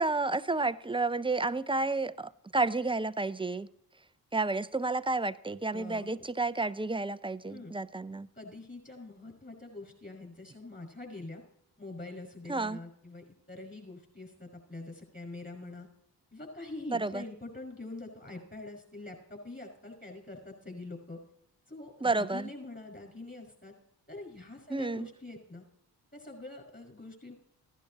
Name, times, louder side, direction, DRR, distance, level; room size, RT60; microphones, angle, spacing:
voice 1, 0.0-3.7 4.3-8.3 12.5-12.8 16.9-17.2 22.0-22.5 24.7-25.1, right 3 dB, 10° right, 0.5 m, -31 dB
voice 2, 5.7-6.2 7.5-7.7 8.4-11.4 11.8-15.9 16.3-21.2 21.7-23.7 24.1-25.6 26.1-27.3, left 2 dB, 25° left, 5.4 m, -45 dB
15.5 x 11.5 x 2.9 m
supercardioid pair, 45°, 44 cm